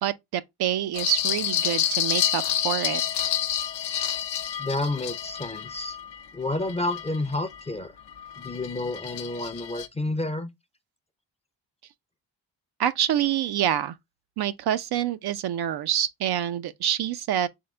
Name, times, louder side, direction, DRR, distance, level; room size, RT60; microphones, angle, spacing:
voice 1, 0.0-3.0 12.8-14.0 14.4-17.5, right 10 dB, 60° right, 0.5 m, -26 dB
sound 1, 0.9-7.6 8.1-9.9, left 10 dB, 65° left, 0.7 m, -29 dB
voice 2, 4.6-6.0 6.3-7.9 8.4-10.5, left 2 dB, 15° left, 0.5 m, -30 dB
3.7 x 3.4 x 3.2 m
supercardioid pair, 60°, 44 cm